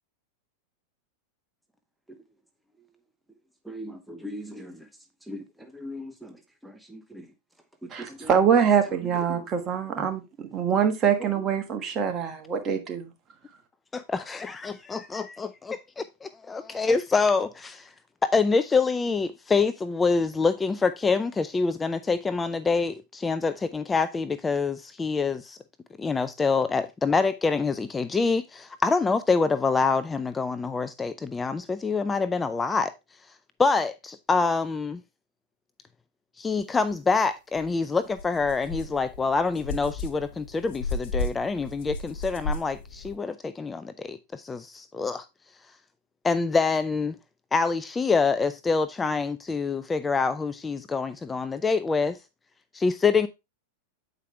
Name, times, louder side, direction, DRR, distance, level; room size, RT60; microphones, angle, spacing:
voice 1, 3.7-4.9 5.3-6.4 6.6-7.3 7.8-8.3 9.3-9.4 10.0-10.1 11.2-11.3, equal, 5° right, 0.8 m, -40 dB
voice 2, 7.9-13.1, right 7 dB, 30° right, 1.5 m, -24 dB
voice 3, 13.9-17.9 18.2-25.6 26.0-32.9 33.6-35.0 36.4-45.3 46.2-47.2 47.5-52.2 52.7-53.3, left 4 dB, 15° left, 0.4 m, -26 dB
sound 1, 37.6-37.7 38.1-43.2, left 2 dB, 60° left, 1.5 m, -34 dB
8.1 x 5.0 x 3.2 m
hypercardioid pair, 110°, 0 cm